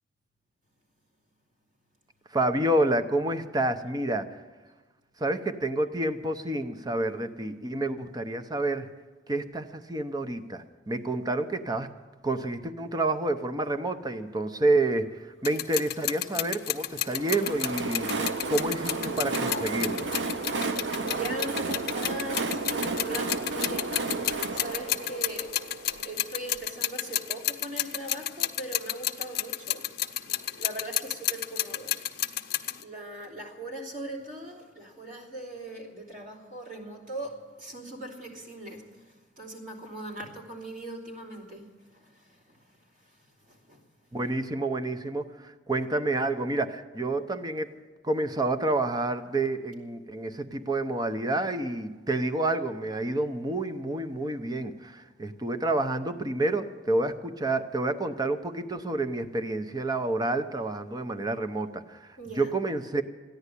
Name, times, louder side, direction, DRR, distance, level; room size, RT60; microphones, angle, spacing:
voice 1, 2.3-4.3 5.2-8.9 9.3-11.9 12.2-20.1 44.1-47.7 48.0-63.0, right 2 dB, 20° right, 8 dB, 0.7 m, -29 dB
sound 1, 15.4-32.8, left 12 dB, 55° left, 0.7 m, -32 dB
Train, 17.0-26.6, right 3 dB, 75° right, 0.7 m, -32 dB
voice 2, 21.0-25.5 26.0-29.9 30.5-32.0 32.7-44.2 62.2-62.5, right 2 dB, 50° right, -1 dB, 3.2 m, -40 dB
14.5 x 10.5 x 8.3 m, 1.3 s
head